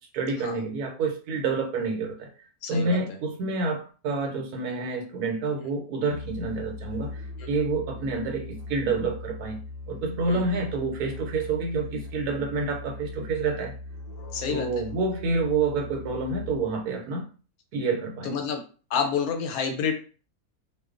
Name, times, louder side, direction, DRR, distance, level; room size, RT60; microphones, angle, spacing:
voice 1, 0.1-2.3 2.7-13.7 14.5-17.3 17.7-18.3, right 3 dB, 80° right, 3 dB, 1.1 m, -28 dB
voice 2, 2.6-3.0 7.4-7.5 10.3-10.5 14.3-14.9 18.2-18.6 18.9-19.9, left 6 dB, 75° left, 5 dB, 1.0 m, -29 dB
Musical instrument, 6.1-16.9, left 2 dB, 50° left, 0.8 m, -40 dB
2.4 x 2.2 x 2.4 m, 0.37 s
omnidirectional pair, 1.6 m